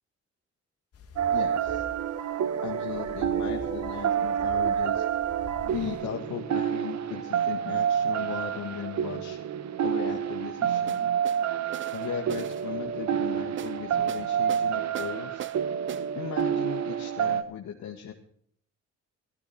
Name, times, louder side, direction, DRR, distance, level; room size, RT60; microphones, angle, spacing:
sound 1, 0.9-6.0, left 3 dB, 50° left, 2.2 m, -47 dB
sound 2, 1.2-17.4, right 9 dB, 60° right, 0.9 m, -28 dB
voice 1, 1.3-1.9 2.6-5.1 5.6-9.4 9.8-11.0 11.9-15.4 16.1-18.1, left 9 dB, 70° left, 0 dB, 1.6 m, -37 dB
sound 3, 10.9-11.4 11.7-12.6 13.6-13.8 14.1-14.7 14.9-15.6 15.9-16.1 16.4-16.5, right 10 dB, 40° right, 0.5 m, -40 dB
15.0 x 14.0 x 4.2 m, 0.62 s
cardioid pair, 90°, 30 cm